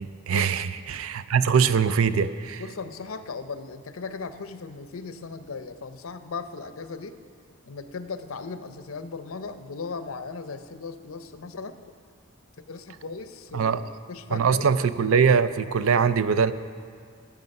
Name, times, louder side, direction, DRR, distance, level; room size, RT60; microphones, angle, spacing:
voice 1, 0.0-2.6 13.5-13.8 14.3-16.5, right 6 dB, 85° right, 13 dB, 0.5 m, -22 dB
voice 2, 2.6-7.2 7.7-11.8 12.6-13.8 14.1-14.7, left 4 dB, 90° left, 10 dB, 0.7 m, -37 dB
15.0 x 9.2 x 5.4 m, 2.1 s
head